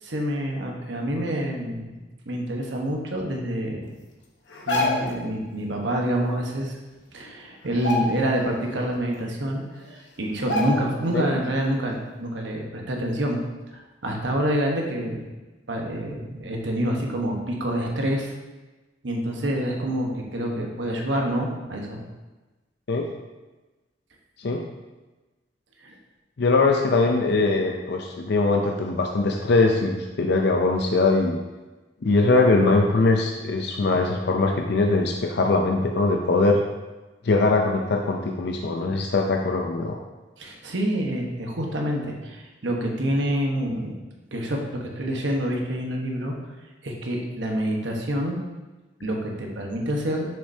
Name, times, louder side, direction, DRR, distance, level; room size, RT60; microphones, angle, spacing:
voice 1, 0.0-3.8 4.7-6.8 7.1-9.6 9.9-13.4 13.7-15.3 15.7-18.3 19.0-22.0 25.8-26.0 40.4-44.0 44.3-46.3 46.8-48.4 49.0-50.3, equal, 80° right, 1 dB, 1.2 m, -27 dB
sound 1, 4.5-5.2 6.7-6.8 7.1-7.3 7.7-8.6 8.9-9.0 9.8-9.9 10.5-11.1 11.5-11.6, left 2 dB, 85° left, 1.1 m, -27 dB
voice 2, 26.4-31.4 32.0-36.6 37.2-40.0, left 3 dB, 65° left, 1 dB, 0.5 m, -21 dB
6.8 x 6.3 x 2.7 m, 1.2 s
head